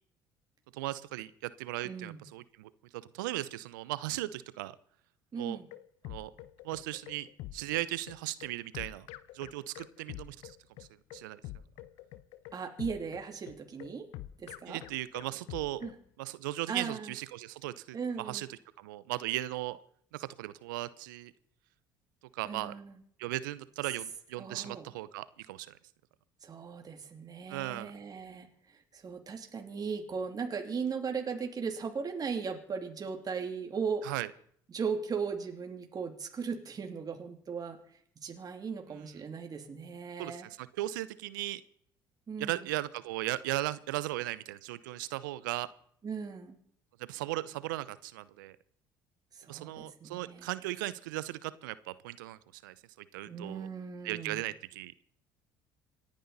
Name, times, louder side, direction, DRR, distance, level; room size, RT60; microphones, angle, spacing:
voice 1, 0.7-4.8 5.4-5.6 6.0-6.3 6.6-9.1 9.3-10.6 11.1-11.4 14.7-15.8 16.2-18.5 18.8-19.8 20.1-21.3 22.3-22.7 23.2-25.7 27.5-27.9 34.0-34.3 40.2-41.6 42.4-45.7 47.1-48.6 49.5-52.7 53.1-53.7 54.0-54.9, right 16 dB, 80° right, 17 dB, 0.8 m, -37 dB
voice 2, 1.8-2.2 5.3-5.7 12.5-14.1 14.4-14.8 15.8-15.9 16.7-17.1 17.9-18.4 22.4-23.0 24.4-24.9 26.4-34.0 34.7-37.8 38.2-40.5 42.3-42.7 46.0-46.6 49.3-50.5 53.3-54.4, right 5 dB, 35° right, 3 dB, 2.8 m, -37 dB
sound 1, 5.4-16.0, left 14 dB, 70° left, 0.9 m, -46 dB
27.5 x 10.5 x 4.1 m, 0.65 s
hypercardioid pair, 60°, 11 cm